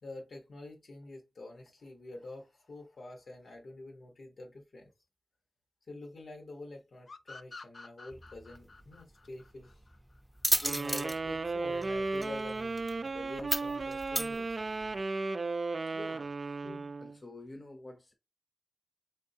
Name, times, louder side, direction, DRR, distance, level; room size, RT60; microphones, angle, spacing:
voice 1, 0.0-4.9 5.9-9.9 10.6-14.6, left 2 dB, 85° left, 1.0 m, -47 dB
sound 1, 7.1-10.4, left 3 dB, 60° left, 0.3 m, -50 dB
sound 2, 8.1-15.0, right 1 dB, 10° right, 0.7 m, -36 dB
sound 3, 10.6-17.2, right 3 dB, 50° right, 0.3 m, -35 dB
voice 2, 15.9-16.4 16.6-18.1, left 2 dB, 35° left, 0.7 m, -48 dB
3.6 x 3.5 x 2.7 m
wide cardioid pair, 110°, 0 cm